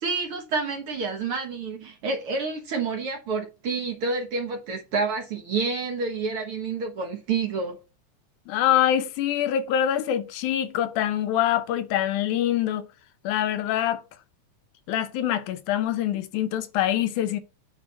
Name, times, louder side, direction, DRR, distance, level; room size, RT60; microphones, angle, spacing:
voice 1, 0.0-7.8, right 4 dB, 55° right, 1.8 m, -29 dB
voice 2, 8.5-12.9 13.2-14.0 14.9-17.4, left 11 dB, 80° left, 2.2 m, -25 dB
9.0 x 4.0 x 5.2 m
omnidirectional pair, 3.5 m